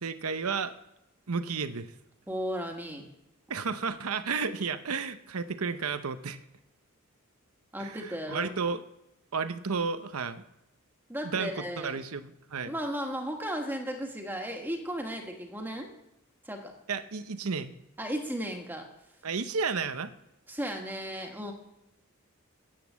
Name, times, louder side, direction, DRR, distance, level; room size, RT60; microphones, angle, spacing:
voice 1, 0.0-0.8 1.3-1.9 3.5-6.4 7.8-8.8 9.3-10.4 11.2-12.7 16.9-17.7 19.2-20.1, right 5 dB, 85° right, 11 dB, 0.8 m, -32 dB
voice 2, 2.3-3.1 7.7-8.6 11.1-12.0 12.7-15.9 16.4-16.7 18.0-18.9 20.5-21.5, equal, 10° right, 2 dB, 1.6 m, -35 dB
10.5 x 8.3 x 7.5 m, 0.89 s
head